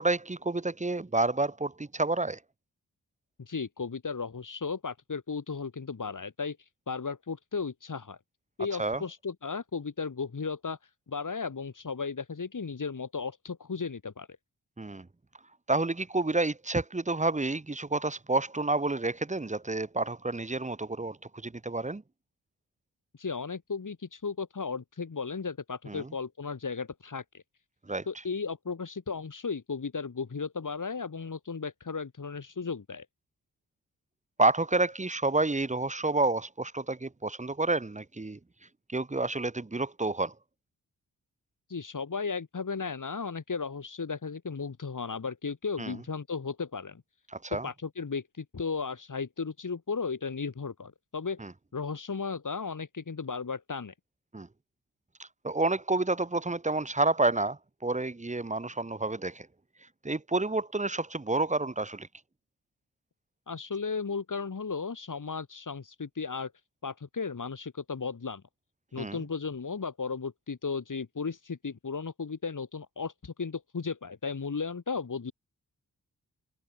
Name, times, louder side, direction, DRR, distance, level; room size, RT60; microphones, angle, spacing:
voice 1, 0.0-2.4 8.8-9.0 14.8-15.1 15.7-21.2 21.4-22.0 25.9-26.1 27.9-28.0 34.4-38.4 38.9-40.3 45.8-45.9 47.3-47.7 51.4-51.5 54.3-54.5 55.4-59.5 60.0-62.1 69.0-69.2, right 2 dB, 20° right, 1.3 m, -29 dB
voice 2, 3.4-6.6 6.9-8.2 8.6-10.8 11.1-14.3 23.2-27.4 28.1-33.1 41.7-47.0 47.5-51.4 51.7-53.9 63.5-66.5 66.8-68.4 68.9-75.3, left 5 dB, 55° left, 6.1 m, -35 dB
cardioid pair, 50°, 37 cm